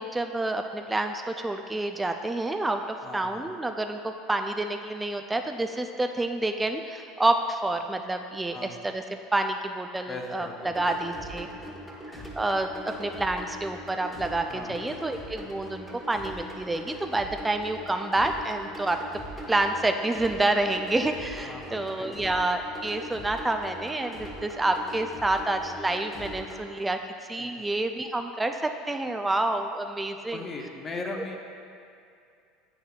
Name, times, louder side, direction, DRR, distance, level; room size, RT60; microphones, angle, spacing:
voice 1, 0.0-9.0 9.3-11.5 12.1-19.0 19.5-27.0 27.3-30.4, right 2 dB, 10° right, 5 dB, 0.3 m, -28 dB
voice 2, 3.0-3.6 8.5-8.8 10.1-11.6 14.5-14.9 21.4-22.2 27.4-27.6 30.3-31.4, left 3 dB, 35° left, 2 dB, 0.8 m, -39 dB
sound 1, 10.6-26.6, equal, 5° left, 1.4 m, -41 dB
8.8 x 4.8 x 2.4 m, 2.5 s
hypercardioid pair, 85°, 0 cm